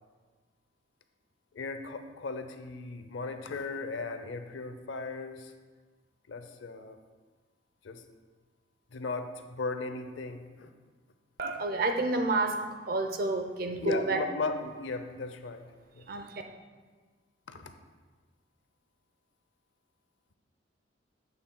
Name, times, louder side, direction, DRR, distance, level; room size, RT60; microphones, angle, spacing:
voice 1, 1.5-5.5 6.3-7.0 7.8-8.0 8.9-10.7 13.8-16.1 17.5-17.7, left 3 dB, 80° left, 8 dB, 0.6 m, -37 dB
voice 2, 11.4-12.6 12.9-14.2 16.1-16.4, right 2 dB, 50° right, 6 dB, 0.6 m, -29 dB
10.0 x 7.9 x 2.2 m, 1.4 s
head